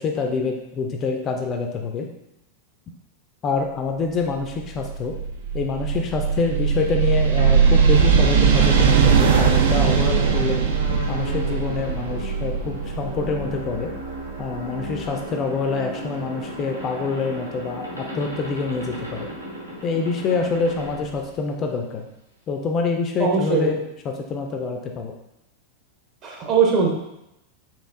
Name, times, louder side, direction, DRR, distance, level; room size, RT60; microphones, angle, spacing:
voice 1, 0.0-2.1 3.4-5.2 5.5-10.6 11.1-13.9 14.4-19.3 19.8-22.1 22.5-25.2, left 4 dB, 30° left, 3 dB, 0.4 m, -26 dB
sound 1, 4.4-15.1, right 6 dB, 60° right, 0.4 m, -20 dB
sound 2, 7.4-22.1, right 1 dB, 85° right, 0.7 m, -35 dB
voice 2, 23.2-23.7 26.2-26.9, right 5 dB, 35° right, -1 dB, 0.9 m, -20 dB
4.3 x 3.0 x 2.4 m, 0.86 s
figure-of-eight pair, 90°, 0 cm